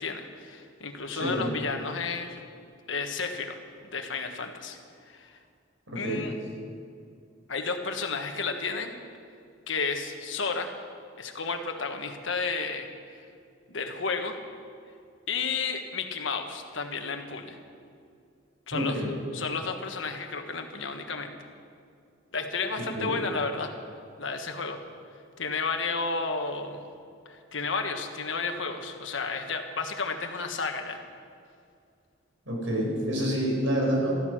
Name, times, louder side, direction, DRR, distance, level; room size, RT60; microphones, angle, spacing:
voice 1, 0.0-2.4 2.9-3.6 3.8-4.8 5.1-5.4 5.9-6.3 7.5-8.9 9.7-10.7 11.2-13.2 13.7-14.3 15.3-17.6 18.7-19.0 19.3-21.3 22.3-23.7 24.2-24.8 25.4-26.8 27.2-31.0, left 4 dB, 70° left, 5 dB, 1.4 m, -32 dB
voice 2, 1.1-1.5 5.9-6.2 18.7-19.1 22.8-23.2 32.5-34.1, equal, 80° right, -1 dB, 4.7 m, -28 dB
14.0 x 13.5 x 6.3 m, 2.3 s
head